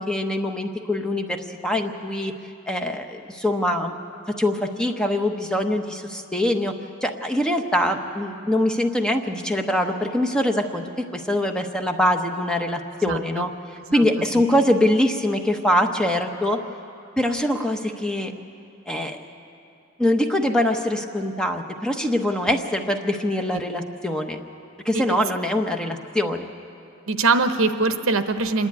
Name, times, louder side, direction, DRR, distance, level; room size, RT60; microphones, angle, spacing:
voice 1, 0.0-2.3 2.7-3.9 4.4-6.7 7.0-13.5 13.9-16.6 17.2-18.3 18.9-19.3 20.0-24.4 24.8-26.5, left 1 dB, 5° left, 4 dB, 0.9 m, -23 dB
voice 2, 13.1-13.5 13.9-14.1 14.3-14.4 24.9-25.2 27.1-28.7, right 3 dB, 70° right, 9 dB, 0.9 m, -22 dB
25.5 x 11.0 x 9.6 m, 2.7 s
head